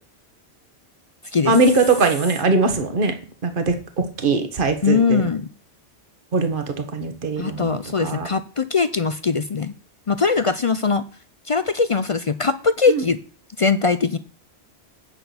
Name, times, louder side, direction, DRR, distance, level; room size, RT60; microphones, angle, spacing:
voice 1, 1.4-3.1 3.4-5.2 6.3-6.6 6.9-8.3 12.9-13.0, right 3 dB, 50° right, 7 dB, 1.5 m, -21 dB
voice 2, 4.8-5.5 7.4-9.7 10.1-11.0 11.5-13.2 13.6-14.2, left 4 dB, 45° left, 13 dB, 0.4 m, -21 dB
8.9 x 6.0 x 6.9 m, 0.38 s
omnidirectional pair, 1.1 m